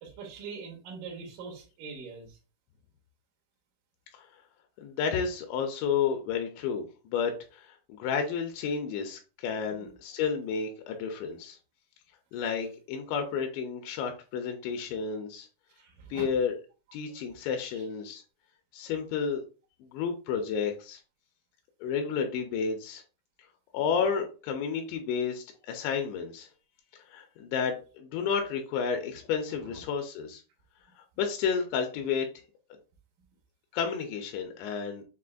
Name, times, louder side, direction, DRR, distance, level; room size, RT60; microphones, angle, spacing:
voice 1, 0.0-2.4 15.8-16.3 17.7-17.8 29.6-29.8, right 5 dB, 70° right, -1 dB, 2.0 m, -43 dB
voice 2, 4.8-11.6 12.3-15.5 16.1-16.5 16.9-18.2 18.7-19.4 19.8-21.0 21.8-23.0 23.7-26.5 27.1-30.4 31.2-32.3 33.7-35.0, left 6 dB, 85° left, 4 dB, 2.8 m, -31 dB
6.8 x 2.5 x 2.5 m, 0.33 s
omnidirectional pair, 5.2 m